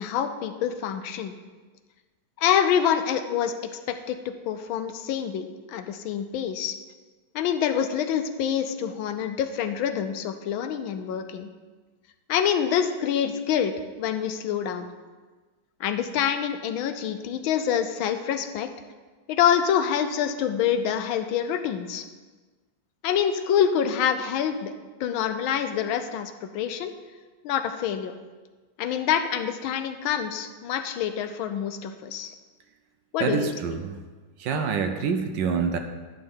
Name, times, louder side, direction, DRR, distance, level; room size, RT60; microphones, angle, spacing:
voice 1, 0.0-1.4 2.4-3.6 3.9-6.7 7.3-11.5 12.3-13.7 14.0-14.9 15.8-18.7 19.3-22.1 23.0-24.7 25.0-26.9 27.4-28.1 28.8-32.3 33.1-33.5 34.5-34.7, left 8 dB, 85° left, 8 dB, 1.4 m, -26 dB
voice 2, 33.2-34.0 34.4-35.8, right 6 dB, 75° right, 6 dB, 1.3 m, -26 dB
11.0 x 3.8 x 7.1 m, 1.3 s
omnidirectional pair, 2.2 m